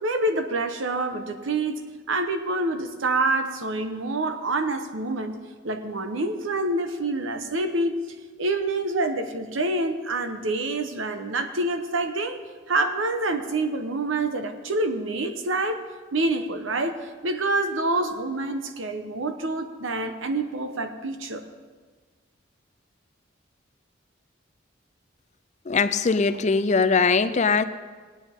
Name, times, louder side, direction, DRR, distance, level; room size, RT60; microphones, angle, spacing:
voice 1, 0.0-1.8 2.1-5.4 5.6-8.0 8.4-12.4 12.7-15.8 16.1-17.0 17.2-21.4, right 2 dB, 80° right, 7 dB, 1.0 m, -27 dB
voice 2, 25.7-27.6, left 4 dB, 35° left, 12 dB, 0.4 m, -21 dB
18.0 x 9.6 x 3.6 m, 1.5 s
head